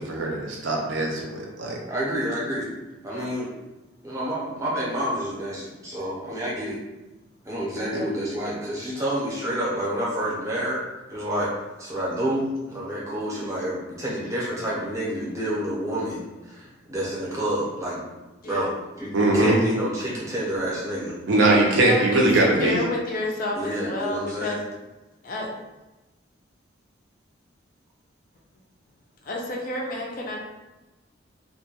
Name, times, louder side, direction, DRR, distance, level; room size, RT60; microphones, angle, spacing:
voice 1, 0.0-1.8 19.1-19.6 21.3-22.8, right 2 dB, 65° right, -1 dB, 0.5 m, -21 dB
voice 2, 1.9-2.7 3.0-3.5 4.0-6.8 7.4-10.8 11.1-11.5 11.8-18.0 18.5-21.1 23.5-24.6, equal, 15° right, -7 dB, 0.6 m, -29 dB
voice 3, 21.7-22.3 22.6-24.6 25.2-25.5 29.2-30.4, left 2 dB, 40° left, -1 dB, 0.3 m, -30 dB
2.2 x 2.2 x 2.8 m, 1.1 s
head